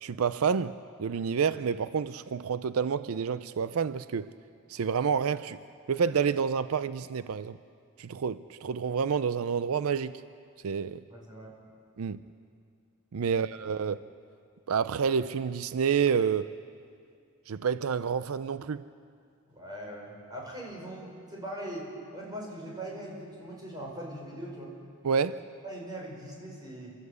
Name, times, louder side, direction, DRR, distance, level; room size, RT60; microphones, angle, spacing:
voice 1, 0.0-4.3 4.7-5.6 5.9-7.6 8.0-10.1 10.6-11.0 12.0-12.2 13.1-14.1 14.7-16.5 17.5-18.8 25.0-25.4, right 6 dB, 90° right, 0.5 m, -29 dB
voice 2, 11.1-11.5 19.5-21.9 22.1-24.7 25.6-26.9, right 1 dB, 20° right, 5.2 m, -41 dB
28.0 x 13.5 x 8.2 m
head